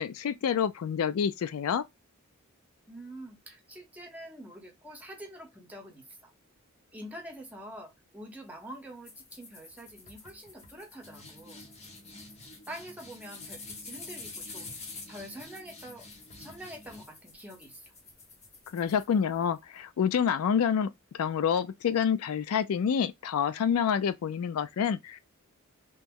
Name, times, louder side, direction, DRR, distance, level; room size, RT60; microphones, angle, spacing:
voice 1, 0.0-1.8 18.7-25.2, left 7 dB, 80° left, 0.3 m, -28 dB
voice 2, 2.9-6.3 6.9-11.6 12.7-14.8 15.1-16.1 16.4-17.9, right 1 dB, 5° right, 0.8 m, -46 dB
sound 1, 9.0-19.6, left 3 dB, 30° left, 0.8 m, -47 dB
3.0 x 2.1 x 3.5 m
head